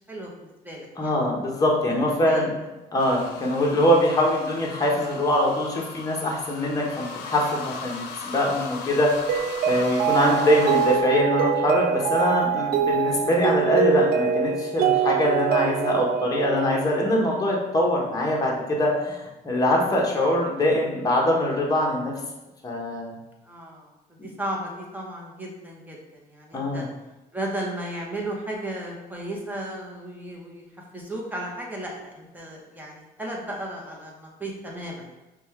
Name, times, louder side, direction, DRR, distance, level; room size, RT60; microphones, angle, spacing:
voice 1, 0.1-1.1 2.2-2.5 3.4-3.5 19.8-19.9 23.4-23.9 24.2-26.9 27.3-30.7 30.9-35.1, right 1 dB, 10° right, -2 dB, 0.9 m, -35 dB
voice 2, 1.0-2.5 2.9-22.1 22.6-23.1 24.2-24.3 26.5-26.8, left 1 dB, 20° left, -2 dB, 1.0 m, -23 dB
sound 1, 3.0-11.0, left 4 dB, 80° left, 0.6 m, -38 dB
Mallet percussion, 9.3-17.4, right 7 dB, 60° right, 0.4 m, -24 dB
5.2 x 2.3 x 3.2 m, 1.0 s
cardioid pair, 110°, 17 cm